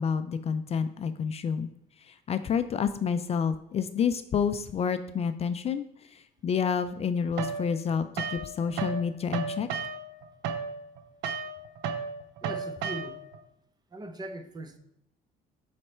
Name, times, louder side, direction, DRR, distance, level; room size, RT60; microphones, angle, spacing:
voice 1, 0.0-1.7 2.1-5.8 6.4-9.7, left 6 dB, 40° left, 0.4 m, -29 dB
sound 1, 7.4-9.0 9.3-13.4, right 5 dB, 85° right, 0.7 m, -34 dB
voice 2, 12.4-13.2 13.9-14.8, right 2 dB, 25° right, 0.7 m, -40 dB
7.7 x 3.3 x 4.3 m
cardioid pair, 110°, 17 cm